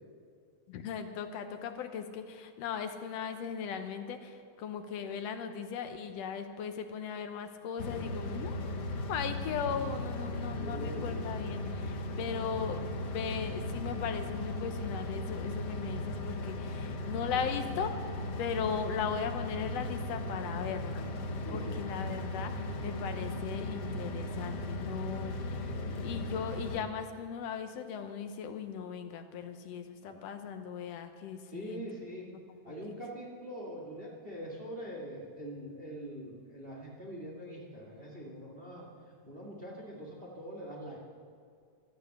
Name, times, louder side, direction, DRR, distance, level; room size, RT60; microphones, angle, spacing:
voice 1, 0.7-8.8 9.1-18.1 18.4-21.1 21.5-25.6 26.0-31.8, left 7 dB, 70° left, 7 dB, 1.9 m, -38 dB
sound 1, 7.8-26.8, left 1 dB, 85° left, 0.9 m, -37 dB
voice 2, 10.6-11.4 18.5-18.6 21.4-21.7 25.7-26.3 30.0-30.2 31.5-32.3 32.6-41.0, equal, 25° right, -1 dB, 1.7 m, -44 dB
15.0 x 12.0 x 6.5 m, 2.3 s
omnidirectional pair, 3.3 m